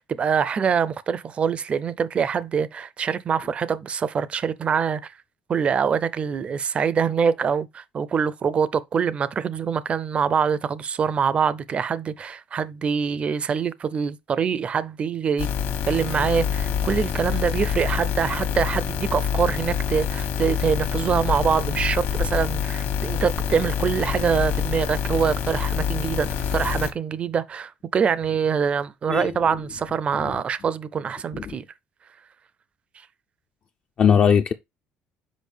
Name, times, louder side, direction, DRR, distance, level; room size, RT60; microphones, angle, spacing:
voice 1, 0.0-5.1 5.5-15.5 15.9-31.6, right 6 dB, 30° right, 0.4 m, -24 dB
sound 1, 15.4-26.9, left 8 dB, 60° left, 1.3 m, -26 dB
voice 2, 34.0-34.5, left 7 dB, 35° left, 0.4 m, -19 dB
6.3 x 4.9 x 3.3 m
cardioid pair, 155°, 4 cm